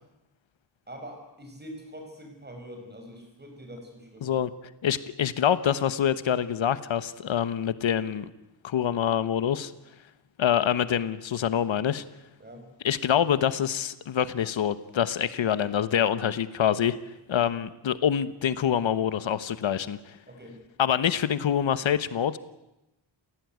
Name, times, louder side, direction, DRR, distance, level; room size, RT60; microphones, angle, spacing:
voice 1, 0.9-4.3 12.4-12.6 17.3-17.6 20.3-20.6, equal, 20° right, 4 dB, 6.0 m, -44 dB
voice 2, 4.8-8.3 8.6-9.7 10.4-12.0 12.8-17.0 17.3-20.2 20.8-22.4, left 9 dB, 80° left, 14 dB, 1.2 m, -26 dB
29.0 x 16.5 x 9.4 m, 0.94 s
wide cardioid pair, 170°, 46 cm